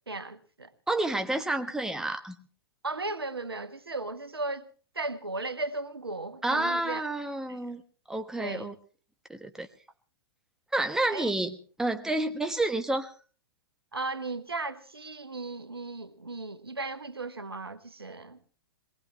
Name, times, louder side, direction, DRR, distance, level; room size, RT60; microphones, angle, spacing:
voice 1, 0.1-0.7 2.8-4.7 4.9-7.0 7.5-7.6 8.4-8.7 11.1-11.3 13.9-18.4, right 3 dB, 90° right, 1.3 m, -36 dB
voice 2, 0.9-2.4 6.4-7.8 8.1-8.7 9.3-9.7 10.7-13.1, right 2 dB, 5° right, 1.3 m, -29 dB
22.5 x 19.0 x 3.2 m
figure-of-eight pair, 110°, 12 cm